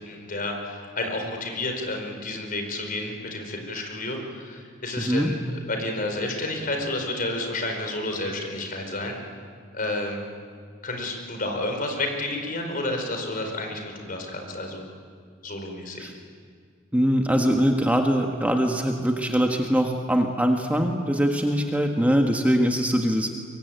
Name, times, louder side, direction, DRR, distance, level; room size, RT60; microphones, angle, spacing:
voice 1, 0.0-5.4 5.7-9.1 9.7-10.2 10.8-14.9 15.4-16.1, left 2 dB, 45° left, 4 dB, 4.6 m, -30 dB
voice 2, 5.0-5.3 16.0-16.1 16.9-23.3, equal, 10° right, 2 dB, 1.5 m, -22 dB
24.0 x 23.0 x 9.3 m, 2.1 s
head